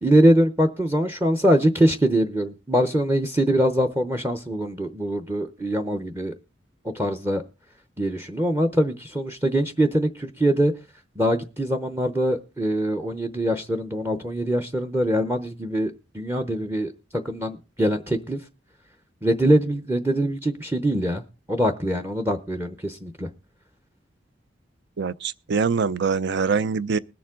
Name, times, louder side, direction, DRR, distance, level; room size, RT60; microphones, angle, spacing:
voice 1, 0.0-6.3 6.9-7.4 8.0-10.7 11.2-18.4 19.2-21.2 21.5-23.3, right 1 dB, 15° right, 0.7 m, -23 dB
voice 2, 25.0-27.0, right 5 dB, 65° right, 0.5 m, -24 dB
21.0 x 7.0 x 3.7 m
head